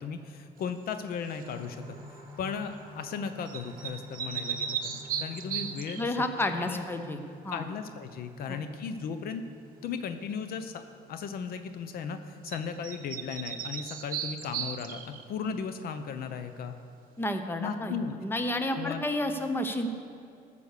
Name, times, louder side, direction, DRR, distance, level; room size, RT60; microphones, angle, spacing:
voice 1, 0.0-1.8 2.4-4.9 5.2-6.1 6.6-6.8 7.5-9.4 9.8-10.7 11.1-16.8 17.6-18.1 18.7-19.1, left 6 dB, 60° left, 9 dB, 0.8 m, -36 dB
sound 1, 1.3-1.6 3.5-6.1 12.4-12.6 12.8-15.3, right 8 dB, 55° right, 0.9 m, -36 dB
sound 2, 1.4-14.9 15.4-15.5 15.9-16.0, right 1 dB, 20° right, 2.1 m, -50 dB
voice 2, 6.0-7.2 7.4-7.6 8.5-8.6 17.2-18.0 18.2-19.9, left 1 dB, 15° left, 7 dB, 0.9 m, -30 dB
14.0 x 6.9 x 6.7 m, 2.5 s
cardioid pair, 110°, 17 cm